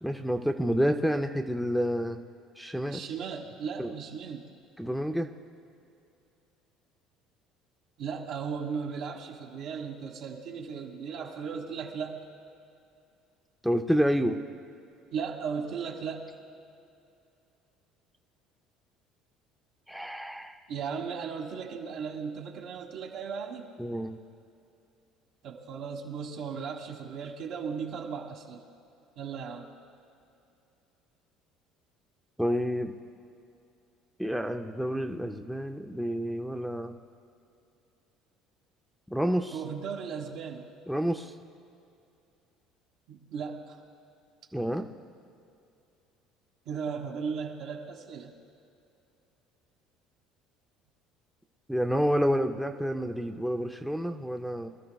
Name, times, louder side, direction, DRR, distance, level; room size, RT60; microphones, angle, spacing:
voice 1, 0.0-2.2 2.6-3.0 3.8-3.9 4.8-5.3 13.6-14.4 19.9-20.6 23.8-24.2 32.4-33.0 34.2-37.0 39.1-39.6 40.9-41.3 44.5-44.9 51.7-54.7, equal, ahead, 4 dB, 0.5 m, -29 dB
voice 2, 2.9-4.5 8.0-12.2 15.1-16.3 20.7-23.7 25.4-28.6 29.1-29.7 39.5-40.7 43.1-43.8 46.6-48.3, right 6 dB, 55° right, 1 dB, 1.5 m, -36 dB
25.0 x 13.5 x 2.3 m, 2.6 s
cardioid pair, 165°, 0 cm